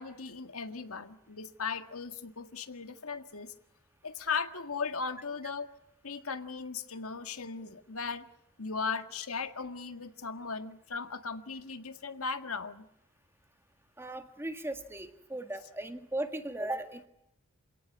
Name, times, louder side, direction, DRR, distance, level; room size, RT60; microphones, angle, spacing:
voice 1, 0.0-3.5 4.0-5.7 6.0-8.2 8.6-12.9, left 5 dB, 85° left, 9 dB, 1.8 m, -37 dB
voice 2, 14.0-17.1, right 1 dB, 10° right, 8 dB, 1.8 m, -37 dB
28.0 x 17.5 x 9.7 m, 0.82 s
head